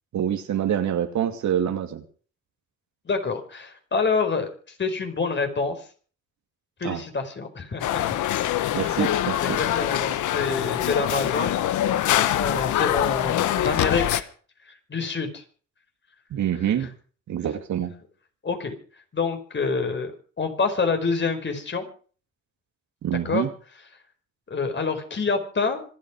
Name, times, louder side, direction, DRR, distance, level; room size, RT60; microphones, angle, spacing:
voice 1, 0.1-2.0 6.8-7.0 8.7-9.6 16.3-16.9 17.3-17.9 23.0-23.5, right 10 dB, 70° right, 7 dB, 2.6 m, -26 dB
voice 2, 3.0-4.5 4.8-5.8 6.8-8.2 8.5-9.1 9.4-11.6 12.2-14.3 14.7-15.4 18.4-18.7 19.1-21.9 23.2-23.5 24.5-25.8, left 4 dB, 40° left, 6 dB, 4.7 m, -27 dB
sound 1, 7.8-14.2, left 12 dB, 80° left, 1.2 m, -24 dB
26.5 x 9.3 x 4.9 m, 0.42 s
cardioid pair, 90°, 30 cm